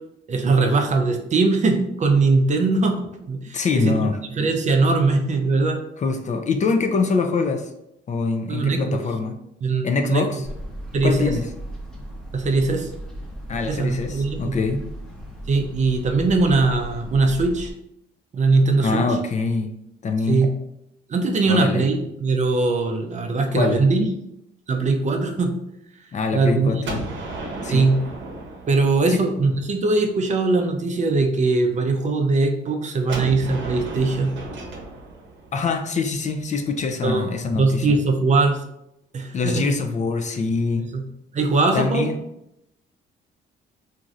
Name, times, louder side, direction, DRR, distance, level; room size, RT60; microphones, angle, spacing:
voice 1, 0.3-5.8 8.5-9.0 9.6-10.2 10.9-11.3 12.3-12.9 13.7-14.6 15.5-17.7 18.3-19.0 20.3-20.5 21.1-24.1 24.7-25.6 26.3-26.7 27.7-28.0 28.7-34.6 37.0-38.6 39.1-39.7 40.9-41.0 41.3-42.1, right 3 dB, 40° right, 4 dB, 0.4 m, -21 dB
voice 2, 3.5-4.2 6.0-7.7 8.1-9.4 9.8-10.5 11.0-11.5 13.5-14.8 18.8-19.7 20.0-20.5 21.5-21.8 23.5-23.8 26.1-27.0 27.6-27.9 29.1-29.3 35.5-38.0 39.3-40.9 41.7-42.2, left 4 dB, 35° left, 5 dB, 0.4 m, -24 dB
sound 1, 10.4-17.7, equal, 5° left, 0.7 m, -36 dB
Gunshot gunfire, 26.8-29.7 33.1-36.9, right 2 dB, 65° right, 0.8 m, -34 dB
3.0 x 2.5 x 2.5 m, 0.81 s
cardioid pair, 90°, 20 cm